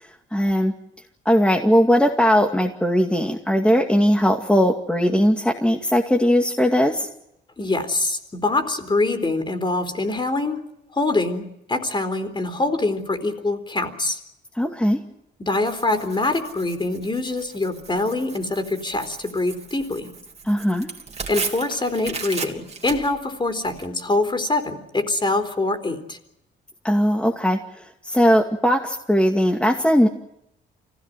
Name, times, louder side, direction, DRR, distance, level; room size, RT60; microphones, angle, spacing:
voice 1, 0.3-0.7 1.3-7.1 14.6-15.0 20.4-20.9 26.8-27.6 28.0-30.1, equal, 5° left, 2 dB, 2.4 m, -19 dB
voice 2, 7.6-10.6 10.9-14.2 15.4-20.1 21.3-26.2, left 2 dB, 25° left, 9 dB, 3.9 m, -24 dB
Tearing, 15.6-23.9, right 4 dB, 35° right, 3.3 m, -36 dB
25.0 x 17.0 x 9.4 m, 0.82 s
cardioid pair, 90°, 20 cm